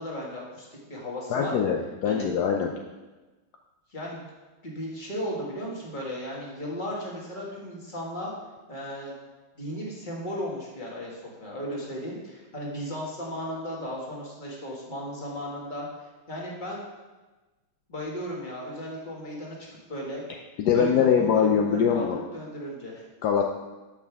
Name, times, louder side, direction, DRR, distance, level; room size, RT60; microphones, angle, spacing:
voice 1, 0.0-1.5 2.0-2.3 3.9-4.2 4.6-8.3 8.7-9.1 9.6-15.9 16.3-16.8 17.9-19.6 19.9-20.2 20.7-23.0, equal, 25° left, -4 dB, 1.9 m, -35 dB
voice 2, 1.3-2.7 20.6-22.2 23.2-23.4, left 7 dB, 70° left, 1 dB, 0.9 m, -23 dB
13.0 x 6.0 x 3.5 m, 1.2 s
omnidirectional pair, 2.3 m